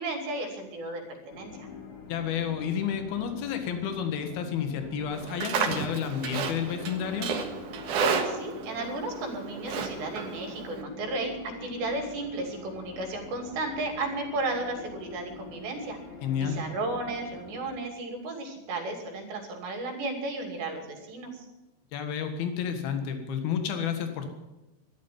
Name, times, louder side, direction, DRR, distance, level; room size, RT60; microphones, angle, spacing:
voice 1, 0.0-1.7 8.0-16.0 16.4-21.5, right 2 dB, 80° right, 4 dB, 4.8 m, -34 dB
sound 1, 1.3-17.8, left 5 dB, 45° left, 3.0 m, -45 dB
voice 2, 2.1-7.3 16.2-16.6 21.9-24.3, left 8 dB, 65° left, 7 dB, 3.4 m, -30 dB
Livestock farm animals working animals, 5.1-10.8, right 6 dB, 60° right, 2.5 m, -32 dB
12.5 x 11.5 x 9.3 m, 1.0 s
omnidirectional pair, 5.0 m